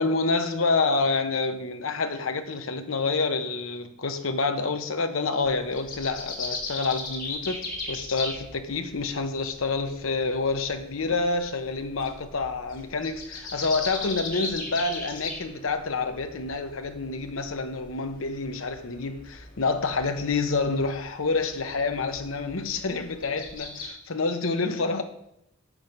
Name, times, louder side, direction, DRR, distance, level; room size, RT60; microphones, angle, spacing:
voice 1, 0.0-25.0, left 3 dB, 70° left, 0.9 m, -28 dB
sound 1, 5.4-23.9, left 3 dB, 40° left, 2.2 m, -39 dB
7.4 x 6.2 x 5.2 m
head